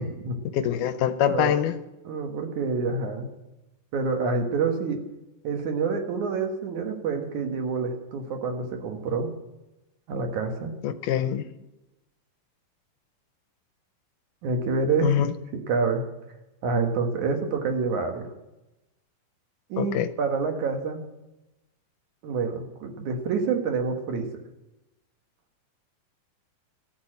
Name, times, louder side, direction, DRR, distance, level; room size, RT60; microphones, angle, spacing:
voice 1, 0.0-0.3 1.2-1.6 2.0-3.3 3.9-5.0 5.4-9.3 10.1-10.7 14.4-15.1 15.5-16.0 16.6-18.3 19.7-21.0 22.2-24.3, right 4 dB, 65° right, 5 dB, 2.8 m, -27 dB
voice 2, 0.5-1.7 10.8-11.5 15.0-15.3 19.8-20.1, left 10 dB, 80° left, 12 dB, 2.1 m, -24 dB
14.0 x 7.3 x 9.9 m, 0.97 s
omnidirectional pair, 3.8 m